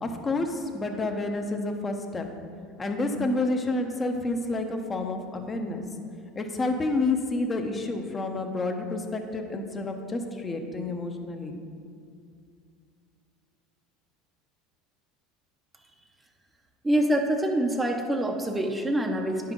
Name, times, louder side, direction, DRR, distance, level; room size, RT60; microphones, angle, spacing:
voice 1, 0.0-2.3 2.8-5.8 6.4-11.6, left 2 dB, 25° left, 4 dB, 0.9 m, -29 dB
voice 2, 16.8-19.5, right 1 dB, 15° right, 2 dB, 0.7 m, -25 dB
9.7 x 5.6 x 3.9 m, 2.3 s
hypercardioid pair, 85°, 0 cm